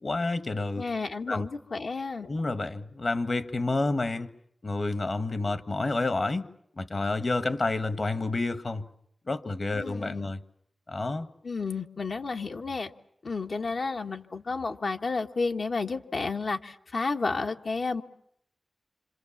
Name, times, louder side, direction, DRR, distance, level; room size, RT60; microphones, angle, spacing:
voice 1, 0.0-0.8 1.3-1.5 2.2-4.3 4.6-6.5 6.8-8.9 9.3-10.4 10.9-11.3, left 2 dB, 55° left, 1.5 m, -29 dB
voice 2, 0.8-2.3 9.7-10.3 11.4-12.9 13.2-18.0, left 4 dB, 70° left, 1.5 m, -31 dB
27.0 x 26.5 x 7.3 m
cardioid pair, 45°, 0 cm